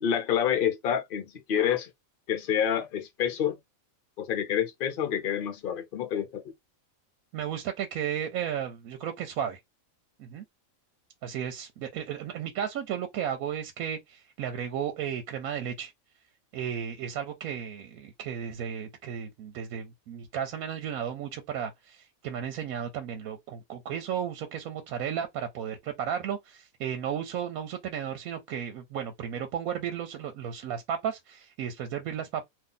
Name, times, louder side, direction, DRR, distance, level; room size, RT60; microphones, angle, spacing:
voice 1, 0.0-1.9 2.3-3.6 4.2-6.4, left 9 dB, 55° left, 0.6 m, -28 dB
voice 2, 7.3-9.6 10.2-10.4 11.2-15.9 16.5-32.4, right 8 dB, 85° right, 1.1 m, -34 dB
2.7 x 2.3 x 3.6 m
omnidirectional pair, 1.5 m